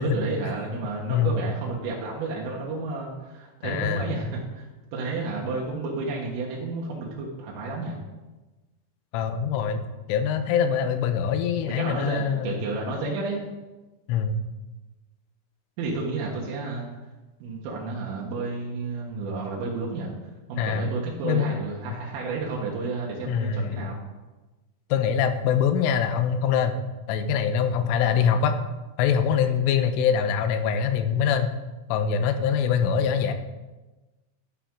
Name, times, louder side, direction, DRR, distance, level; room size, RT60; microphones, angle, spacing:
voice 1, 0.0-8.0 11.6-13.4 15.8-16.9 17.4-20.1 20.5-24.0, right 3 dB, 85° right, -3 dB, 4.0 m, -31 dB
voice 2, 1.1-1.4 3.6-4.1 9.1-12.6 14.1-14.4 20.6-20.9 21.2-21.5 23.3-23.9 24.9-26.7 27.1-28.6 29.0-31.5 31.9-33.3, left 7 dB, 85° left, 8 dB, 3.3 m, -24 dB
11.5 x 10.0 x 3.8 m, 1.1 s
omnidirectional pair, 5.7 m